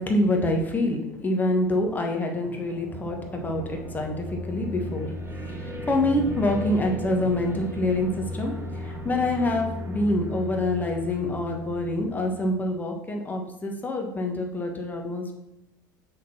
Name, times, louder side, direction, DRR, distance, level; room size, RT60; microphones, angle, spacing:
voice 1, 0.0-5.1 5.5-8.5 8.8-15.3, left 1 dB, 15° left, 2 dB, 1.4 m, -26 dB
sound 1, 2.4-12.6, equal, 25° right, 1.9 m, -36 dB
6.4 x 3.9 x 5.8 m, 0.87 s
figure-of-eight pair, 75°, 10 cm